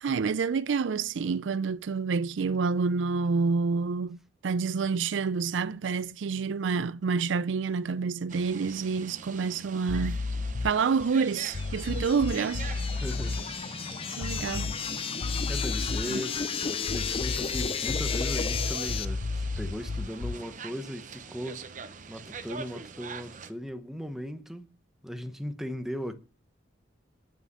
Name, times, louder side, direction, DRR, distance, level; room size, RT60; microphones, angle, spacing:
voice 1, 0.0-10.2 10.6-12.7 14.2-14.8 16.0-16.2, right 5 dB, 80° right, 0.4 m, -28 dB
sound 1, 8.3-23.5, right 5 dB, 45° right, 0.8 m, -44 dB
sound 2, 9.9-10.8 11.5-13.4 14.2-14.9 15.2-16.2 16.8-20.5, left 3 dB, 85° left, 0.6 m, -33 dB
sound 3, 11.1-19.1, left 6 dB, 30° left, 0.4 m, -33 dB
voice 2, 13.0-13.5 15.5-21.7 22.1-24.7 25.0-26.2, equal, ahead, 0.9 m, -38 dB
9.7 x 5.6 x 8.1 m
head